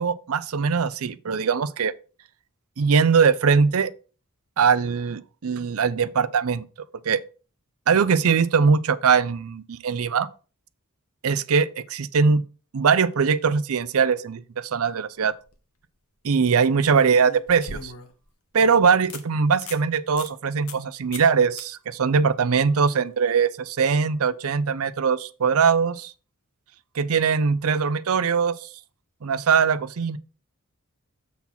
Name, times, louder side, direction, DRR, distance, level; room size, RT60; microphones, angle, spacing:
voice 1, 0.0-1.9 2.8-3.9 4.6-6.6 7.1-7.2 7.9-10.3 11.2-12.4 12.7-15.3 16.2-17.9 18.5-26.1 27.0-28.7 29.2-30.2, right 5 dB, 75° right, 0.5 m, -21 dB
sound 1, 15.2-15.6 17.0-18.3 18.7-18.8 19.1-19.2 19.6-19.8 20.2-20.3 20.7-20.9 21.1-21.3 21.6-21.7 24.8-24.9, left 4 dB, 80° left, 1.1 m, -39 dB
7.2 x 4.2 x 5.7 m
head